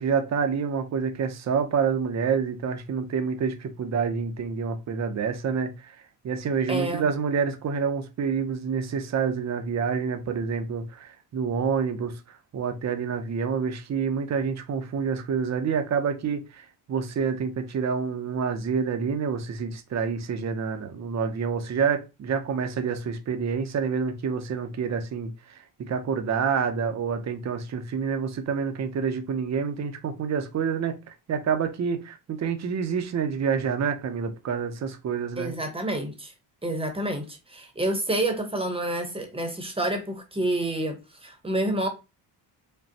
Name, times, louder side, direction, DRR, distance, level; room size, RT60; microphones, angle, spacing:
voice 1, 0.0-6.0 6.2-25.6 25.9-35.5, right 6 dB, 40° right, 0.7 m, -28 dB
voice 2, 6.7-7.1 35.4-36.3 36.6-41.9, right 1 dB, 15° right, 0.9 m, -28 dB
5.2 x 2.2 x 2.8 m
cardioid pair, 130°, 43 cm